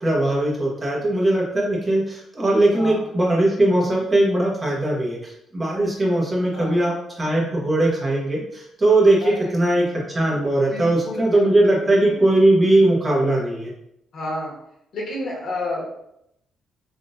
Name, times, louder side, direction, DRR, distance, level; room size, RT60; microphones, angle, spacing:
voice 1, 0.0-13.7, right 1 dB, 25° right, -3 dB, 0.9 m, -20 dB
voice 2, 2.7-3.1 6.5-6.8 9.2-9.6 10.7-12.2 14.1-14.5 14.9-16.0, left 1 dB, 60° left, -3 dB, 1.1 m, -31 dB
3.6 x 2.4 x 2.6 m, 0.78 s
cardioid pair, 90°, 0 cm